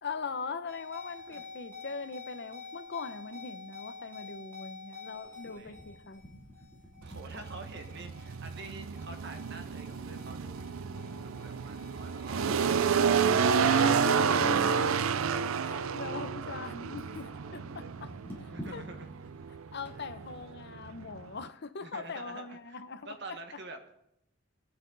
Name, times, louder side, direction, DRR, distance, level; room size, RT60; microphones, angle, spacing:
voice 1, 0.0-6.3 13.5-14.9 15.6-18.8 19.7-23.4, left 4 dB, 55° left, 10 dB, 0.8 m, -40 dB
sound 1, 0.7-15.4 15.8-16.1 16.7-20.5, left 3 dB, 10° left, 2.9 m, -49 dB
voice 2, 5.1-5.8 7.0-12.8 14.2-14.8 17.2-17.8 18.5-19.1 21.8-23.8, right 2 dB, 55° right, 5 dB, 1.6 m, -47 dB
sound 2, 7.0-21.5, right 6 dB, 80° right, 0.5 m, -30 dB
19.0 x 7.9 x 4.0 m, 0.79 s
head